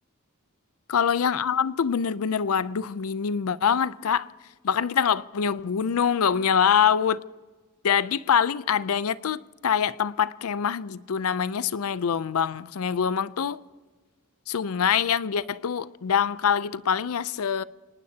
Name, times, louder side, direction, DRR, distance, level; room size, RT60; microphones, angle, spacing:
voice 1, 0.9-4.3 4.6-7.2 7.8-13.6 14.5-17.6, left 7 dB, 75° left, 0.5 m, -24 dB
26.0 x 19.0 x 2.8 m
head